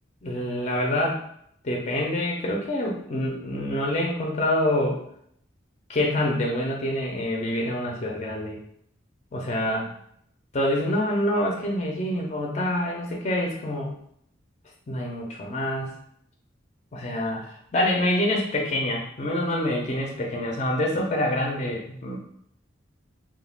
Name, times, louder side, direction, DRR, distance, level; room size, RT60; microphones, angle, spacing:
voice 1, 0.2-1.2 1.6-5.0 5.9-8.6 9.3-9.9 10.5-14.0 14.9-15.9 16.9-22.2, left 1 dB, 35° left, -1 dB, 0.5 m, -26 dB
2.3 x 2.2 x 3.3 m, 0.69 s
head